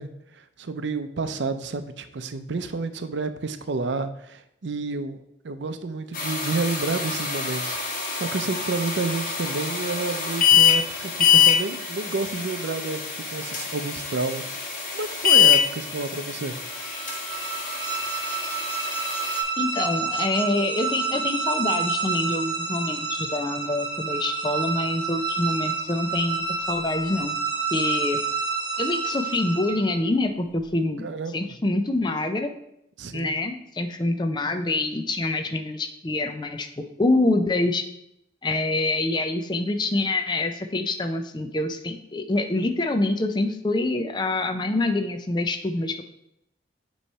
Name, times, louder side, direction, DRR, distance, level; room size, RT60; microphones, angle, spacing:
voice 1, 0.0-7.8 8.1-16.6 31.0-31.6 33.0-33.3, right 3 dB, 75° right, 9 dB, 0.6 m, -30 dB
sound 1, 6.1-19.4, left 8 dB, 50° left, 1.5 m, -24 dB
sound 2, 16.6-30.0, right 4 dB, 25° right, 1.3 m, -29 dB
voice 2, 19.6-27.4 27.7-28.2 28.8-31.0 31.3-32.5 33.1-37.8 38.4-46.0, left 2 dB, 25° left, 6 dB, 0.4 m, -26 dB
8.3 x 3.1 x 5.5 m, 0.78 s
head